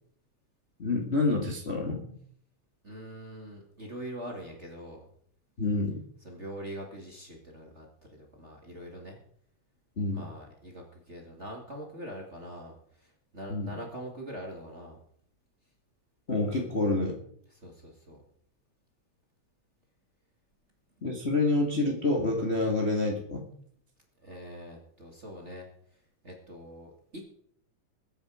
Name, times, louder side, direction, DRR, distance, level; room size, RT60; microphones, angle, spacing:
voice 1, 0.8-2.1 5.6-6.0 10.0-10.2 13.5-13.7 16.3-17.1 21.0-23.5, left 2 dB, 25° left, 0 dB, 1.7 m, -27 dB
voice 2, 2.8-5.1 6.2-9.2 10.1-15.0 17.5-18.2 24.2-25.7 26.2-27.2, equal, 25° right, 1 dB, 2.1 m, -43 dB
21.0 x 8.7 x 4.9 m, 0.64 s
omnidirectional pair, 3.4 m